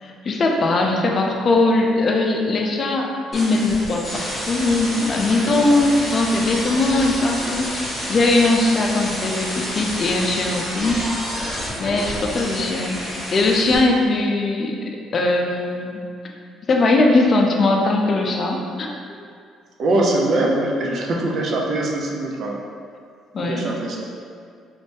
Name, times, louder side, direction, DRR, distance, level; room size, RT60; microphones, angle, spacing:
voice 1, 0.0-11.1 11.8-16.0 16.7-18.9 23.3-23.7, left 2 dB, 40° left, 1 dB, 0.4 m, -20 dB
sound 1, 3.3-13.8, equal, 5° left, 1.4 m, -29 dB
voice 2, 19.8-22.6 23.4-24.1, right 2 dB, 50° right, -1 dB, 0.5 m, -22 dB
3.1 x 2.6 x 3.4 m, 2.2 s
cardioid pair, 110°, 0 cm